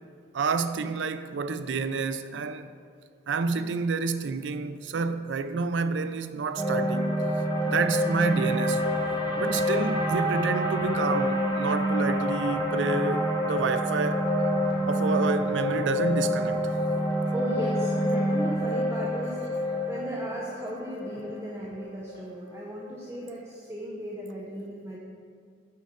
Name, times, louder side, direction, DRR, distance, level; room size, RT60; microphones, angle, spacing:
voice 1, 0.3-2.7 3.3-7.3 7.6-8.9 9.4-14.3 14.9-16.6, right 4 dB, 80° right, 0.4 m, -29 dB
sound 1, 6.6-22.8, equal, 20° left, 1.0 m, -27 dB
voice 2, 17.3-19.4 19.6-25.0, equal, 15° right, 0.8 m, -36 dB
8.3 x 5.3 x 6.5 m
head